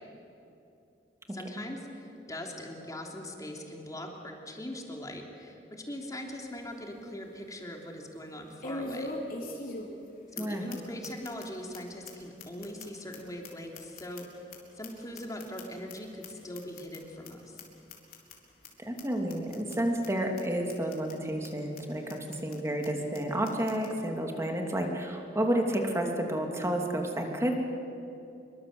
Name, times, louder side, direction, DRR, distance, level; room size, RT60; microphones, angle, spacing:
voice 1, 1.3-9.2 10.3-14.3 14.8-17.6, left 1 dB, 20° left, 1 dB, 3.3 m, -41 dB
sound 1, 6.2-6.3 6.8-6.9 8.6-10.1 10.4-10.5 10.7-10.8 11.0-11.4 11.7-11.8 12.1-12.2 12.4-14.6 14.8-15.9 16.2-16.3 16.5-17.0 17.2-17.3 17.6-17.7 17.9-18.3 18.6-18.7 19.0-19.1 19.3-19.8 20.0-20.1 20.4-20.5 20.7-21.1 21.4-21.5 21.8-21.9 22.1-22.6 22.8-22.9 23.1-23.2 23.4-23.9, left 2 dB, 55° left, 4.2 m, -40 dB
voice 2, 18.8-27.5, right 1 dB, 15° right, 2 dB, 3.0 m, -30 dB
26.5 x 23.5 x 7.9 m, 2.8 s
head